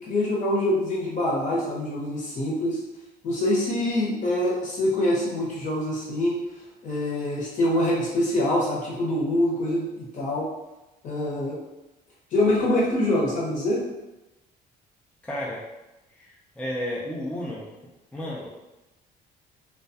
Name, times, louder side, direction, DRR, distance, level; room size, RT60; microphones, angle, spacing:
voice 1, 0.0-2.8 3.2-6.4 6.8-10.5 11.0-11.6 12.3-13.8, left 1 dB, 50° left, -5 dB, 0.9 m, -25 dB
voice 2, 15.2-15.7 16.1-17.7 18.1-18.5, equal, 5° left, -5 dB, 0.4 m, -32 dB
2.3 x 2.2 x 2.6 m, 1.0 s
cardioid pair, 110°, 17 cm